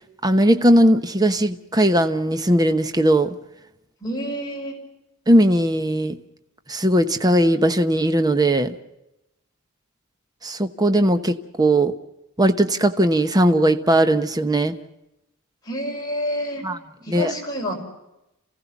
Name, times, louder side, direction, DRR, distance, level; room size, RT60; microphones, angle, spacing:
voice 1, 0.2-3.3 5.3-6.2 6.7-8.8 10.4-11.9 12.4-14.8 16.6-16.8 17.1-17.3, right 1 dB, 20° right, 1.0 m, -18 dB
voice 2, 4.0-4.7 15.6-16.6 17.0-17.7, equal, 20° left, 6.0 m, -28 dB
29.0 x 16.5 x 7.1 m
head